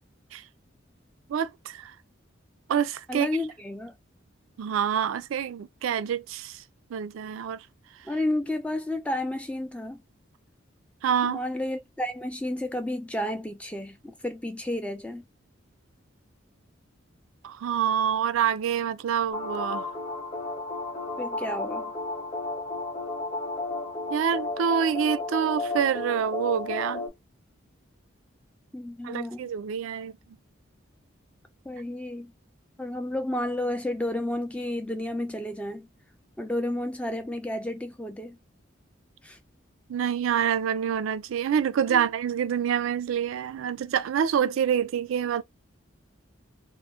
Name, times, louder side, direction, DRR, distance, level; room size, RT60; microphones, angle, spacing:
voice 1, 1.3-1.9 2.7-3.3 4.6-6.6 6.9-7.7 11.0-11.4 17.4-19.9 24.1-27.1 29.0-30.1 39.9-45.4, right 8 dB, 80° right, 0.3 m, -27 dB
voice 2, 3.1-3.9 8.1-10.0 11.2-15.2 21.2-21.9 28.7-29.5 31.7-32.3 32.8-35.9 36.4-38.4 39.2-39.4 41.9-42.1, left 1 dB, 5° left, 0.4 m, -31 dB
sound 1, 19.3-27.1, left 3 dB, 30° left, 0.8 m, -33 dB
2.4 x 2.0 x 3.5 m
head